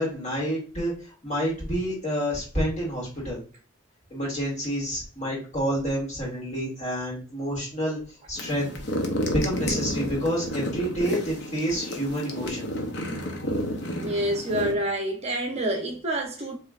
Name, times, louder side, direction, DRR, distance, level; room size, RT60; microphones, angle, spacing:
voice 1, 0.0-3.4 4.1-8.7 9.3-12.7, equal, 35° left, 2.2 m, -28 dB
sound 1, 8.4-14.7, equal, 55° left, 0.8 m, -31 dB
voice 2, 14.0-16.6, right 1 dB, 30° right, 0.7 m, -27 dB
5.1 x 3.1 x 2.4 m
head